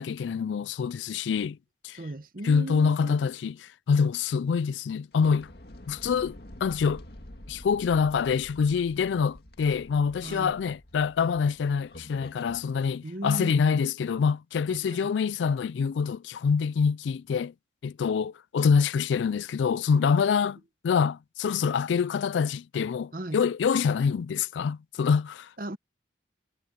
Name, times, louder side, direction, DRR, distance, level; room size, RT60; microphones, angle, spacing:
voice 1, 0.0-1.6 1.8-2.0 2.4-5.5 5.9-7.0 7.5-17.5 17.8-25.5, left 6 dB, 85° left, 0.3 m, -26 dB
voice 2, 1.9-3.2 10.2-10.5 13.0-13.6 14.8-15.1 23.1-23.4 25.6-25.8, right 1 dB, 50° right, 1.0 m, -36 dB
sound 1, 5.1-12.7, left 1 dB, 60° left, 2.0 m, -48 dB
head